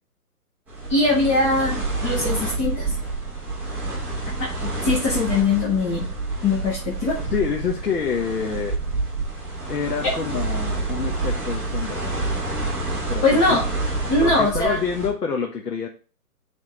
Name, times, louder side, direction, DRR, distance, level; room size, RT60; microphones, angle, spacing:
sound 1, 0.7-15.1, right 3 dB, 5° right, 0.7 m, -28 dB
voice 1, 0.9-3.0 4.4-6.1 6.4-7.1 13.2-13.6 14.1-14.8, left 3 dB, 15° left, -5 dB, 1.1 m, -21 dB
voice 2, 7.3-8.8 9.7-12.3 13.1-13.6 14.2-15.9, left 6 dB, 85° left, 0 dB, 1.3 m, -27 dB
10.0 x 3.6 x 3.2 m, 0.35 s
hypercardioid pair, 145°, 47 cm